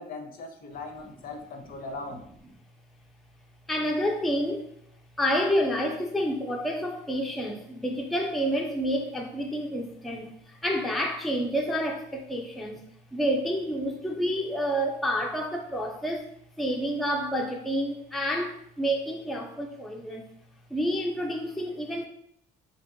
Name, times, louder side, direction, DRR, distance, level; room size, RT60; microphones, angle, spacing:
voice 1, 0.0-2.2, left 3 dB, 60° left, 5 dB, 0.5 m, -39 dB
voice 2, 3.7-4.7 5.2-12.8 13.1-16.3 16.6-20.3 20.7-22.0, equal, ahead, 2 dB, 0.3 m, -29 dB
2.8 x 2.6 x 2.5 m, 0.69 s
cardioid pair, 110°, 17 cm